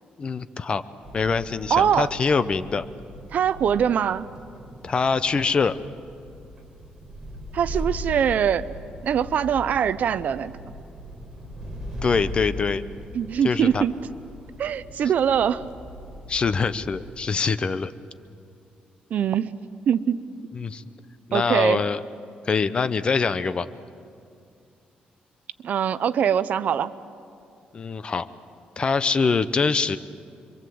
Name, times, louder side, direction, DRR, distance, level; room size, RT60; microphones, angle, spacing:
voice 1, 0.2-0.8 1.1-2.9 4.8-5.8 12.0-12.8 13.4-13.8 16.3-17.9 20.5-20.8 21.3-22.0 22.5-23.7 27.7-28.3 28.8-30.0, left 5 dB, 35° left, 13 dB, 0.7 m, -24 dB
sound 1, 1.0-17.2, left 1 dB, 15° right, 5.1 m, -39 dB
voice 2, 1.7-2.1 3.3-4.3 7.5-8.7 9.0-10.5 13.1-13.9 14.6-15.6 19.1-19.5 19.9-20.2 21.3-21.8 25.6-26.9, right 8 dB, 60° right, 15 dB, 0.7 m, -22 dB
27.0 x 24.0 x 7.8 m, 2.4 s
cardioid pair, 140°, 3 cm